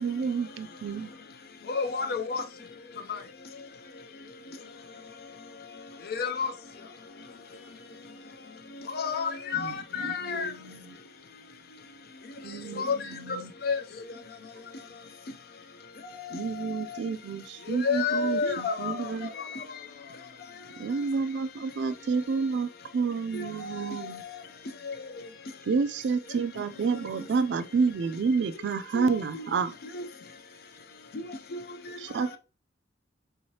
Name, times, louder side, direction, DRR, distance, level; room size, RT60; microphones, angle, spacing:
voice 1, 0.0-1.1 9.5-10.9 12.4-13.5 16.3-19.3 20.8-24.2 25.7-29.7 32.0-32.4, right 5 dB, 70° right, 0.4 m, -30 dB
voice 2, 1.8-2.4 6.2-6.5 9.0-9.7 10.0-10.5 12.8-13.0 13.7-13.8 17.8-18.9 29.0-29.1, left 5 dB, 60° left, 0.5 m, -28 dB
voice 3, 2.9-3.3 7.2-8.2 12.7-13.1 14.1-14.2 14.6-14.9 26.5-27.3, left 3 dB, 35° left, 0.8 m, -53 dB
3.6 x 3.1 x 2.8 m
head